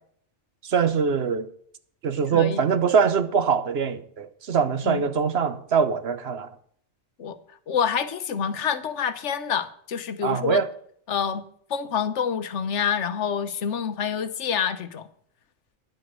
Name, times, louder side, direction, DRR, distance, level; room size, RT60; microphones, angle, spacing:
voice 1, 0.6-1.5 2.0-6.5 10.2-10.7, right 6 dB, 60° right, 1.1 m, -23 dB
voice 2, 2.3-2.6 4.8-5.0 7.2-7.4 7.7-10.6 11.1-11.4 11.7-15.1, left 7 dB, 75° left, 1.2 m, -27 dB
10.5 x 8.0 x 6.1 m
omnidirectional pair, 1.2 m